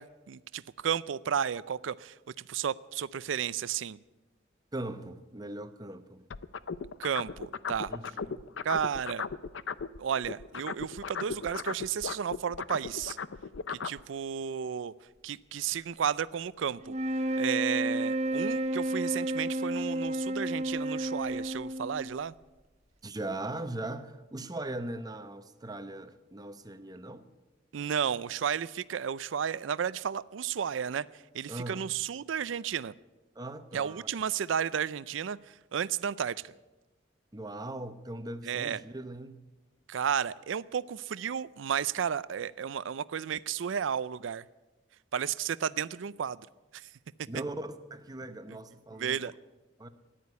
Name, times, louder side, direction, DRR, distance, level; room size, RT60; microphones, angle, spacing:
voice 1, 0.0-2.2 2.5-4.0 7.0-7.9 8.6-9.3 10.0-13.2 13.7-14.9 15.2-16.9 17.4-22.3 27.7-32.9 33.7-36.5 38.4-38.8 39.9-44.4 45.1-46.5 46.7-46.9 49.0-49.3, right 8 dB, 90° right, 0.4 m, -33 dB
voice 2, 4.7-6.2 7.9-8.4 23.0-27.3 31.5-31.8 33.3-34.1 37.3-39.5 47.3-49.2 49.8-49.9, right 2 dB, 20° right, 0.9 m, -39 dB
sound 1, 6.3-10.0 10.2-14.0, left 5 dB, 70° left, 0.5 m, -36 dB
sound 2, 16.8-22.3, right 1 dB, 35° right, 1.1 m, -31 dB
14.0 x 10.0 x 9.5 m
head